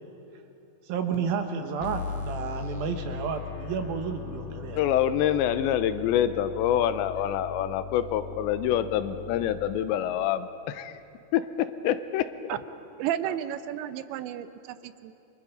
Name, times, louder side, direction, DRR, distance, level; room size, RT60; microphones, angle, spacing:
voice 1, 0.9-4.8 13.2-13.4, right 6 dB, 70° right, 6 dB, 2.5 m, -31 dB
sound 1, 1.8-9.8, left 7 dB, 60° left, 2.3 m, -39 dB
voice 2, 4.8-10.9 11.3-11.4 11.8-12.3, left 10 dB, 90° left, 11 dB, 3.0 m, -26 dB
voice 3, 13.0-15.1, right 11 dB, 85° right, 12 dB, 3.1 m, -32 dB
29.0 x 24.5 x 5.4 m, 2.7 s
omnidirectional pair, 5.1 m